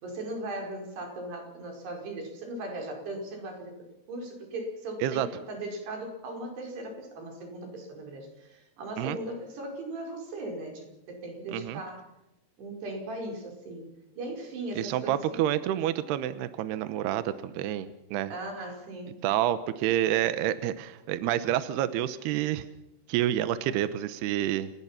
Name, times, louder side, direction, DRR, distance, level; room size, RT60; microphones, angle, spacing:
voice 1, 0.0-12.1 12.6-15.4 18.3-19.2, right 1 dB, 55° right, 2 dB, 6.9 m, -38 dB
voice 2, 14.7-18.3 19.2-22.7 23.1-24.7, right 12 dB, 75° right, 12 dB, 2.5 m, -28 dB
29.5 x 19.5 x 5.9 m, 0.91 s
omnidirectional pair, 5.6 m